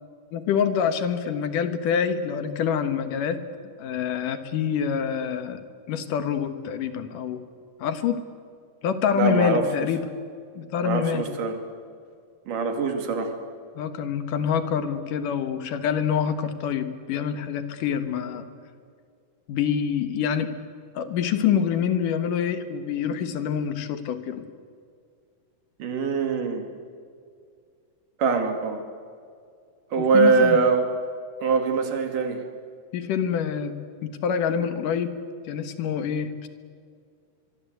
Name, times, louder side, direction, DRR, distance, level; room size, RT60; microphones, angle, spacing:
voice 1, 0.3-3.4 3.8-5.6 5.9-7.4 7.8-8.2 8.8-10.0 10.6-11.2 13.8-18.5 19.5-20.5 21.0-24.4 30.0-30.6 32.9-33.8 34.2-35.2 35.5-36.5, left 7 dB, 75° left, 10 dB, 2.9 m, -26 dB
voice 2, 9.1-9.6 10.8-11.6 12.5-13.3 25.8-26.6 28.2-28.8 29.9-30.9 31.4-32.4, right 4 dB, 70° right, 6 dB, 4.0 m, -22 dB
25.0 x 23.0 x 8.2 m, 2.2 s
omnidirectional pair, 3.9 m